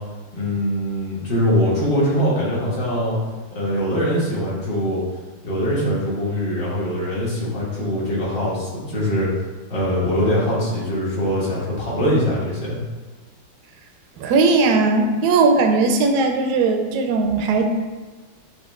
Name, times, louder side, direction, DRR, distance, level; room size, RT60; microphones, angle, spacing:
voice 1, 0.3-3.2 3.5-5.0 5.4-9.3 9.7-12.8, equal, 60° left, -7 dB, 1.9 m, -22 dB
voice 2, 14.2-17.7, right 3 dB, 70° right, 3 dB, 1.0 m, -18 dB
7.1 x 2.4 x 3.1 m, 1.3 s
omnidirectional pair, 2.2 m